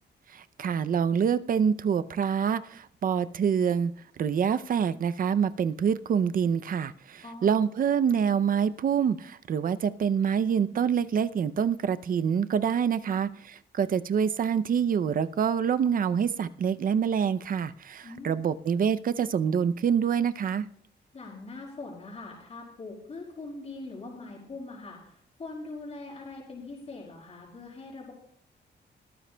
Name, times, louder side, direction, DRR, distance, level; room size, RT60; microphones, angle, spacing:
voice 1, 0.3-3.9 4.2-20.7, right 7 dB, 50° right, 13 dB, 0.5 m, -26 dB
voice 2, 7.2-7.6 13.1-13.2 18.0-18.4 21.1-28.1, left 3 dB, 35° left, -4 dB, 4.5 m, -42 dB
20.5 x 14.0 x 2.2 m, 0.69 s
wide cardioid pair, 145°, 18 cm